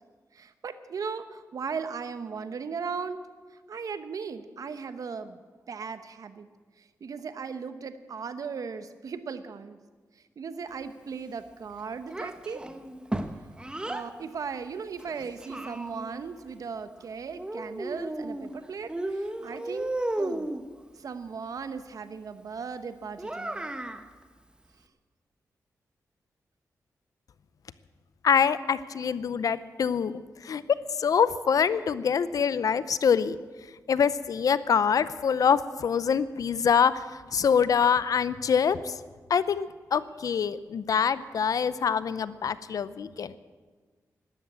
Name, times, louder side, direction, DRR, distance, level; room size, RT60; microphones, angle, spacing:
voice 1, 0.3-3.2 3.7-5.4 5.7-6.5 6.8-9.8 10.1-12.6 13.8-20.5 20.9-23.7, right 5 dB, 70° right, 11 dB, 1.0 m, -37 dB
Child speech kid speaking, 12.1-14.1 15.0-16.2 17.4-18.5 18.9-20.6 23.2-24.0, right 1 dB, 15° right, 1.0 m, -34 dB
voice 2, 28.2-33.4 33.9-37.0 37.3-39.0 39.3-43.3, left 7 dB, 70° left, 16 dB, 0.6 m, -25 dB
12.5 x 12.0 x 8.4 m, 1.4 s
cardioid pair, 75°, 6 cm